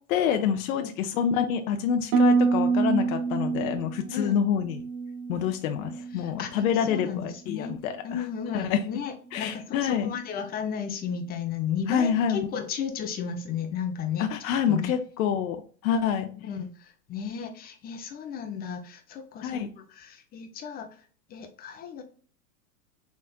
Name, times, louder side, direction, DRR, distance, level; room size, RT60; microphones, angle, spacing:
voice 1, 0.1-4.8 5.3-7.9 8.5-8.8 9.3-10.1 11.9-12.4 14.2-16.3 19.4-19.7, left 8 dB, 60° left, 7 dB, 0.7 m, -27 dB
Harp, 2.1-6.2 6.5-7.1 7.6-7.9, right 5 dB, 35° right, 0.5 m, -27 dB
voice 2, 6.2-7.8 8.0-14.3 14.7-14.9 16.4-20.9 21.3-22.0, left 7 dB, 20° left, 7 dB, 0.5 m, -34 dB
4.1 x 3.6 x 2.3 m, 0.41 s
hypercardioid pair, 115°, 47 cm